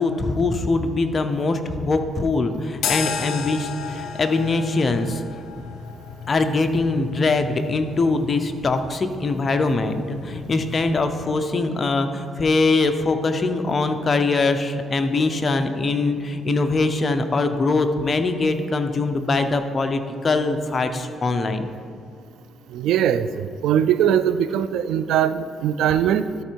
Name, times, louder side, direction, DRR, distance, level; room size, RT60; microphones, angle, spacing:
voice 1, 0.0-5.2 6.3-21.7, left 3 dB, 35° left, 7 dB, 0.7 m, -22 dB
sound 1, 2.8-11.3, left 6 dB, 80° left, 0.7 m, -34 dB
voice 2, 22.7-26.2, right 9 dB, 85° right, 13 dB, 0.3 m, -21 dB
13.0 x 4.4 x 4.5 m, 2.2 s
cardioid pair, 90°, 0 cm